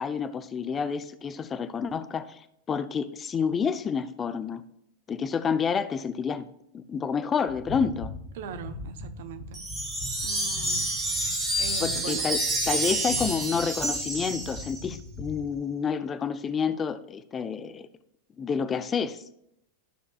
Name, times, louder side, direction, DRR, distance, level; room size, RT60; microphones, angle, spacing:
voice 1, 0.0-2.4 2.7-4.6 5.1-6.5 6.7-8.1 11.8-17.9 18.4-19.2, left 6 dB, 20° left, 0.5 m, -29 dB
sound 1, 7.5-15.5, left 2 dB, 45° left, 2.2 m, -41 dB
voice 2, 8.3-9.6 10.2-10.9 11.6-12.2, right 6 dB, 55° right, 0.9 m, -39 dB
Wind chime, 9.5-14.9, right 1 dB, 25° right, 3.5 m, -29 dB
12.5 x 6.7 x 2.4 m
figure-of-eight pair, 90°, 0 cm